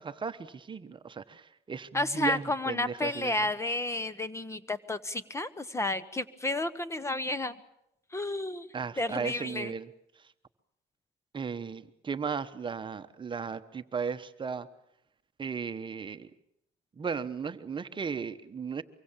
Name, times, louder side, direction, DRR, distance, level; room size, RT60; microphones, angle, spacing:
voice 1, 0.0-3.3 8.7-9.9 11.3-14.7 15.4-16.3 17.0-18.8, right 6 dB, 30° right, 11 dB, 1.1 m, -36 dB
voice 2, 1.9-7.6 8.1-8.7 9.0-9.7, left 2 dB, 15° left, 16 dB, 1.1 m, -31 dB
24.5 x 23.5 x 7.3 m, 0.80 s
cardioid pair, 110°, 17 cm